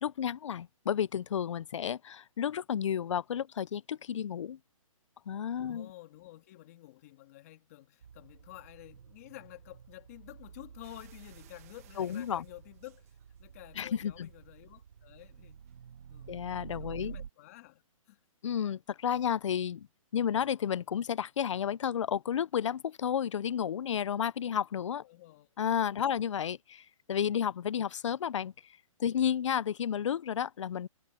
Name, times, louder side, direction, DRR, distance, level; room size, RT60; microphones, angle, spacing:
voice 1, 0.0-4.6 5.3-5.9 12.0-12.4 13.8-14.3 16.3-17.2 18.4-19.9 20.1-25.0 25.6-28.5 29.0-30.9, left 8 dB, 60° left, 0.5 m, -32 dB
voice 2, 5.6-15.6 16.1-16.4 16.8-18.2 25.0-25.5, left 17 dB, 25° left, 2.3 m, -51 dB
sound 1, 8.0-17.3, right 7 dB, 70° right, 0.8 m, -50 dB
sound 2, 10.8-13.7 14.1-14.5 15.2-15.3 15.7-15.8, right 15 dB, 25° right, 1.6 m, -63 dB
hypercardioid pair, 175°, 18 cm